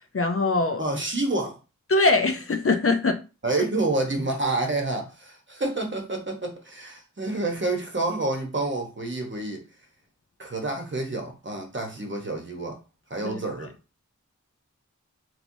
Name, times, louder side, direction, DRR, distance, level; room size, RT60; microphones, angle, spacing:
voice 1, 0.1-0.8 1.9-3.2 13.2-13.4, left 3 dB, 45° left, 0.5 m, -22 dB
voice 2, 0.8-1.6 3.4-9.6 10.4-12.8 13.1-13.7, right 2 dB, 35° right, 0.9 m, -28 dB
3.0 x 2.9 x 2.6 m
wide cardioid pair, 45°, 31 cm